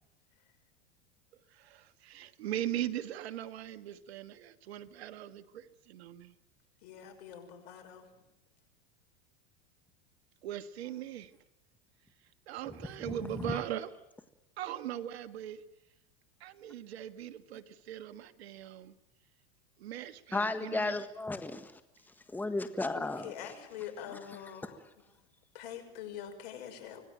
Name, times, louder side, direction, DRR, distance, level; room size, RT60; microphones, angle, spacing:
voice 1, 1.5-6.3 10.4-11.3 12.5-13.9 14.6-15.6 16.4-18.9 19.8-21.0, right 11 dB, 85° right, 10 dB, 1.6 m, -40 dB
voice 2, 6.8-8.1 23.0-24.8 25.5-27.0, left 9 dB, 70° left, 5 dB, 6.0 m, -44 dB
voice 3, 13.0-13.6 20.3-21.8 22.3-23.5, left 2 dB, 5° left, 9 dB, 1.5 m, -34 dB
25.5 x 18.0 x 9.1 m, 0.91 s
supercardioid pair, 125°, 31 cm